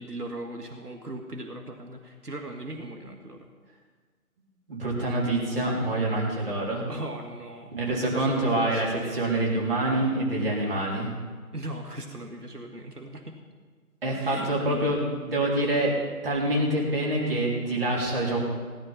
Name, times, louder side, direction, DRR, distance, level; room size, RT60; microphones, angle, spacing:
voice 1, 0.0-3.5 6.9-9.4 11.5-13.4 14.1-14.9, right 1 dB, 90° right, 4 dB, 1.8 m, -39 dB
voice 2, 4.7-6.9 7.7-11.1 14.0-15.9 16.2-18.4, right 1 dB, 40° right, -4 dB, 3.5 m, -26 dB
17.0 x 11.0 x 5.7 m, 1.5 s
figure-of-eight pair, 160°, 45 cm